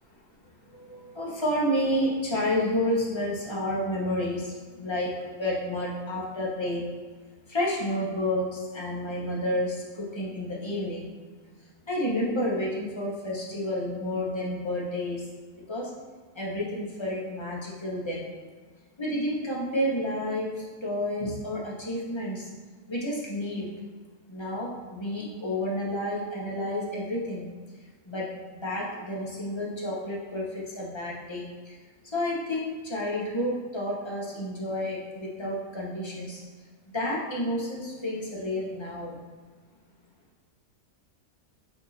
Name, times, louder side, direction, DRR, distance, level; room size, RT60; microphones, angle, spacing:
voice 1, 0.7-6.9 7.5-11.1 11.9-15.2 15.5-15.9 16.3-18.3 19.0-22.5 22.9-23.7 24.3-27.5 28.1-28.3 28.5-31.8 32.1-36.4 36.9-39.2, left 1 dB, 20° left, -5 dB, 1.1 m, -30 dB
8.2 x 2.8 x 4.1 m, 1.5 s
omnidirectional pair, 1.5 m